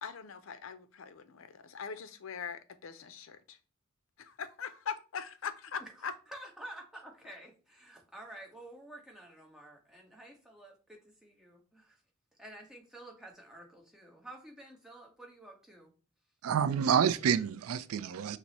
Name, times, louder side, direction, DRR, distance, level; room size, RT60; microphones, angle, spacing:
voice 1, 0.0-3.6 4.2-6.1, left 6 dB, 65° left, 0.5 m, -41 dB
voice 2, 5.8-12.0 12.4-15.9, right 1 dB, 5° right, 1.0 m, -50 dB
voice 3, 16.4-18.4, right 8 dB, 85° right, 0.4 m, -28 dB
5.9 x 2.0 x 4.0 m
head